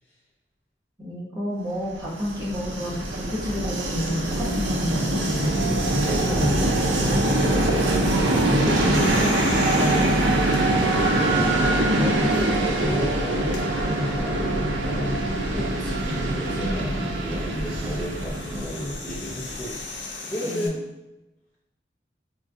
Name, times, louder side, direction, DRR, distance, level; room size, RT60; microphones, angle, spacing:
voice 1, 1.0-5.4 15.5-16.2 16.6-16.8 20.5-20.7, left 1 dB, 25° right, -7 dB, 1.1 m, -31 dB
Train, 1.9-19.7, right 1 dB, 75° right, 0.5 m, -23 dB
voice 2, 5.4-9.4 9.7-10.5 11.7-15.6 16.4-19.7 20.3-20.8, equal, 10° left, -7 dB, 0.5 m, -31 dB
sound 1, 8.9-11.8 12.4-12.5 13.4-13.6 15.8-20.7, left 3 dB, 85° left, 0.6 m, -39 dB
4.9 x 2.4 x 2.5 m, 0.97 s
head